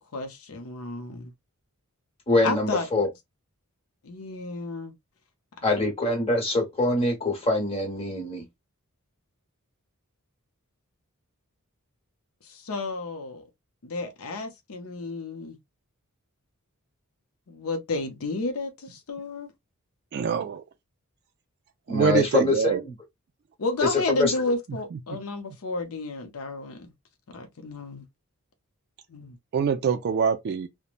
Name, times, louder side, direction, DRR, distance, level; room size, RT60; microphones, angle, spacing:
voice 1, 0.1-1.3 2.4-3.0 4.0-4.9 12.4-13.4 13.8-15.6 17.5-19.5 23.6-26.9 27.3-28.1 29.1-29.4, left 3 dB, 70° left, 0.6 m, -32 dB
voice 2, 2.3-3.1 5.6-8.4 21.9-22.9 24.2-24.3, left 2 dB, 25° left, 1.2 m, -24 dB
voice 3, 20.1-20.6 21.9-22.8 29.5-30.7, right 6 dB, 50° right, 0.3 m, -24 dB
3.0 x 2.1 x 2.4 m
head